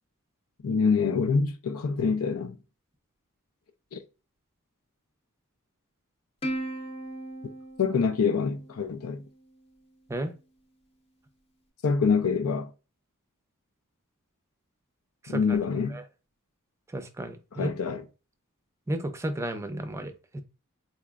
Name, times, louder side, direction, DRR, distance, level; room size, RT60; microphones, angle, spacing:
voice 1, 0.6-2.6 3.9-4.0 7.8-9.2 11.8-12.7 15.3-16.0 17.5-18.1, left 5 dB, 70° left, 0.5 m, -26 dB
Plucked string instrument, 6.4-9.2, right 1 dB, 25° left, 0.7 m, -37 dB
voice 2, 15.2-15.6 15.9-16.0 16.9-17.7 18.9-20.4, right 1 dB, 15° right, 0.5 m, -33 dB
4.2 x 3.0 x 2.3 m
head